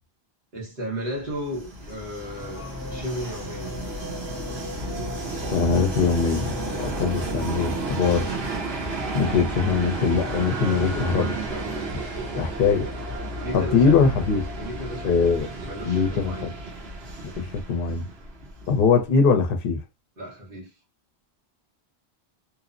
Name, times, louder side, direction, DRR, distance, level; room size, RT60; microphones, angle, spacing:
voice 1, 0.5-3.7 9.5-9.7 10.5-11.9 13.4-14.1 14.6-15.2 15.6-16.5 20.2-20.7, equal, 60° right, 1.3 m, -34 dB
Train, 1.3-19.0, right 2 dB, 75° right, 1.1 m, -32 dB
Race car auto racing / Accelerating revving vroom, 1.7-9.0, left 4 dB, 25° left, 0.5 m, -39 dB
voice 2, 5.5-6.5 6.8-8.3 9.1-11.3 12.4-12.9 13.5-14.4 15.0-15.5 15.9-16.5 17.2-18.1 18.7-19.8, left 5 dB, 65° left, 0.8 m, -22 dB
3.0 x 2.0 x 2.4 m
omnidirectional pair, 1.0 m